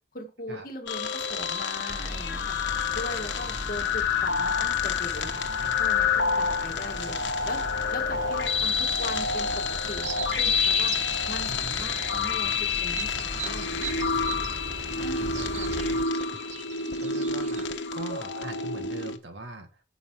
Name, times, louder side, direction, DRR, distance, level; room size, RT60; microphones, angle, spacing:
voice 1, 0.1-2.6 2.9-7.2 7.4-7.6 7.9-9.5 9.9-13.9 14.9-15.8, left 1 dB, 50° left, 4 dB, 1.8 m, -39 dB
sound 1, 0.9-19.2, left 5 dB, 80° left, 1.1 m, -28 dB
sound 2, 1.9-16.0, equal, 20° right, 1.1 m, -39 dB
sound 3, 7.4-17.7, right 8 dB, 35° right, 0.5 m, -42 dB
voice 2, 11.5-11.8 15.0-15.9 17.0-19.8, right 1 dB, 80° right, 6 dB, 1.8 m, -41 dB
9.6 x 7.0 x 4.8 m, 0.35 s
head